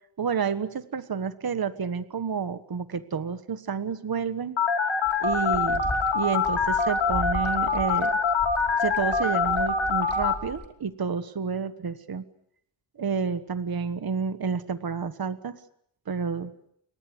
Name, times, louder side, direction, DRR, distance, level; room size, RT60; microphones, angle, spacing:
voice 1, 0.2-4.6 5.2-5.8 6.1-8.2 8.8-12.2 13.0-15.6 16.1-16.5, right 6 dB, 50° right, 12 dB, 1.4 m, -30 dB
Telephone, 4.6-10.3, left 4 dB, 80° left, 3.4 m, -24 dB
sound 1, 5.1-10.7, left 2 dB, 20° left, 4.0 m, -38 dB
30.0 x 23.5 x 8.0 m, 0.72 s
wide cardioid pair, 150°, 46 cm